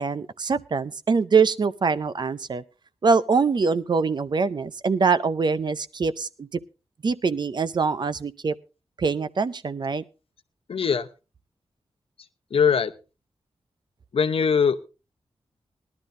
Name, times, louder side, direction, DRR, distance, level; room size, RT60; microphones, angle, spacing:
voice 1, 0.0-2.6 3.0-6.5 7.0-8.5 9.0-10.0, right 5 dB, 45° right, 13 dB, 0.6 m, -23 dB
voice 2, 10.7-11.1 12.5-12.9 14.1-14.8, left 6 dB, 60° left, 11 dB, 0.8 m, -21 dB
20.0 x 11.5 x 2.6 m, 0.31 s
wide cardioid pair, 155°, 11 cm